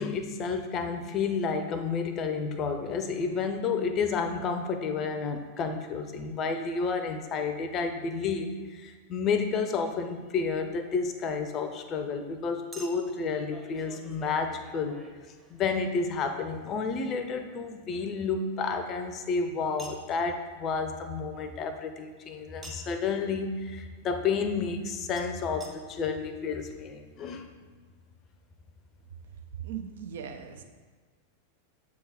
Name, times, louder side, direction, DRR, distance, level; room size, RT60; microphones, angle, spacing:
voice 1, 0.0-15.0 15.5-27.5, left 5 dB, 30° left, 7 dB, 0.6 m, -31 dB
Chink clink, 9.9-10.1 12.7-15.9 17.5-19.2 19.8-20.1 22.6-23.0 25.2-25.3 25.6-25.7 26.4-26.5 26.6-26.7, right 1 dB, 10° right, 0.9 m, -49 dB
voice 2, 29.6-30.6, right 8 dB, 60° right, 5 dB, 0.6 m, -38 dB
7.6 x 3.7 x 4.2 m, 1.5 s
figure-of-eight pair, 90°, 0 cm